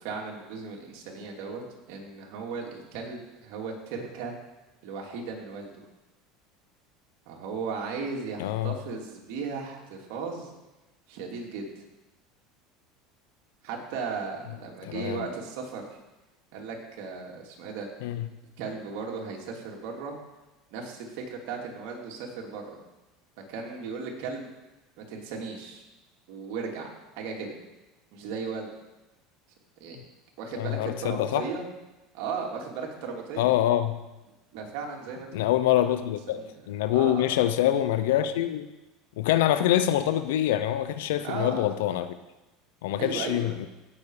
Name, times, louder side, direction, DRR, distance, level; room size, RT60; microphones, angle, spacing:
voice 1, 0.0-4.3 4.8-5.7 7.3-10.5 11.1-11.7 13.6-15.9 16.5-17.9 18.6-20.2 20.7-22.8 23.5-24.5 25.0-25.8 26.3-26.9 27.1-27.6 28.1-28.7 29.8-30.0 30.4-31.6 32.1-33.5 34.5-35.3 35.8-35.9 36.3-36.5 36.9-37.4 41.2-41.6 43.0-43.5, right 5 dB, 70° right, 0 dB, 3.0 m, -36 dB
voice 2, 8.4-8.8 14.8-15.3 18.0-18.3 30.5-31.4 33.4-34.0 35.3-38.7 39.2-42.1 42.8-43.7, left 12 dB, 85° left, 11 dB, 0.7 m, -25 dB
16.5 x 7.0 x 5.0 m, 1.0 s
supercardioid pair, 115°, 0 cm